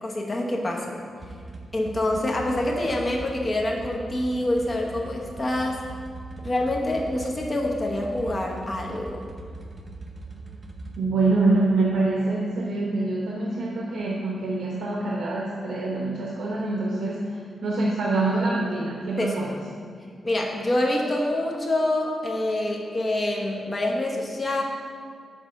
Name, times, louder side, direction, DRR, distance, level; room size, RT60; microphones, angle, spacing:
voice 1, 0.0-1.0 1.7-5.8 6.4-9.2 19.2-19.4 20.2-24.6, left 1 dB, 25° left, 0 dB, 0.9 m, -26 dB
sound 1, 1.2-11.0, right 2 dB, 25° right, 0.6 m, -40 dB
voice 2, 11.0-19.6, right 2 dB, 75° right, -3 dB, 0.8 m, -25 dB
6.3 x 4.4 x 6.4 m, 2.2 s
wide cardioid pair, 155°, 0 cm